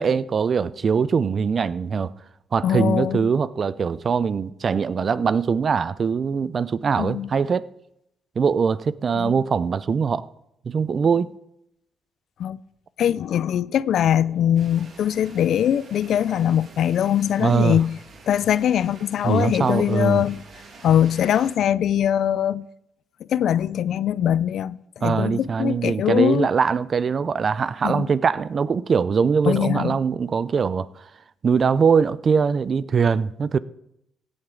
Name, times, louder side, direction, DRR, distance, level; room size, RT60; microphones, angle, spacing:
voice 1, 0.0-2.1 2.5-7.7 8.4-10.3 10.7-11.3 17.4-17.8 19.2-20.2 25.0-30.9 31.4-33.6, right 6 dB, 45° right, 0.5 m, -22 dB
voice 2, 2.6-3.3 7.0-7.3 9.1-9.4 12.4-12.6 13.0-18.0 18.3-20.4 20.8-22.6 23.3-26.5 27.8-28.1 29.5-30.0, left 10 dB, 70° left, 0.4 m, -22 dB
sound 1, 14.5-21.5, right 4 dB, 65° right, 2.8 m, -47 dB
16.5 x 8.8 x 3.9 m
cardioid pair, 90°, 0 cm